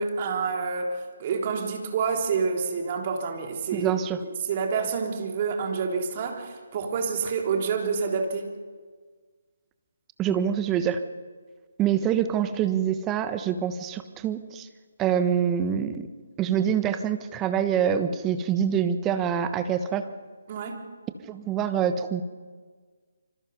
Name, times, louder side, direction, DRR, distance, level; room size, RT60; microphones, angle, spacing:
voice 1, 0.0-3.9 4.5-8.5 20.5-20.8, right 5 dB, 35° right, 2 dB, 3.5 m, -28 dB
voice 2, 3.7-4.2 10.2-11.0 11.8-14.7 15.0-16.1 16.4-20.0 21.3-22.2, right 8 dB, 15° right, 10 dB, 1.3 m, -25 dB
26.0 x 26.0 x 5.4 m, 1.5 s
figure-of-eight pair, 145°, 0 cm